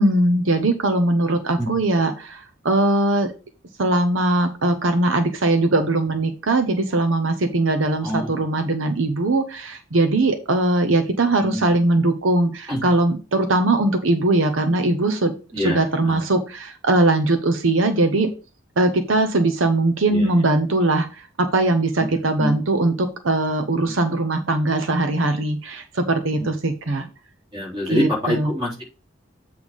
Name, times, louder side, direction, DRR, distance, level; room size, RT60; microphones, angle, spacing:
voice 1, 0.0-3.3 3.8-15.3 15.6-18.3 18.8-27.1 27.9-28.5, right 2 dB, 80° right, 6 dB, 0.9 m, -20 dB
voice 2, 8.0-8.3 11.4-11.7 12.7-12.8 15.5-16.2 20.1-20.3 22.0-22.6 27.5-28.8, left 1 dB, 25° right, -4 dB, 4.0 m, -26 dB
8.2 x 3.4 x 5.2 m, 0.31 s
head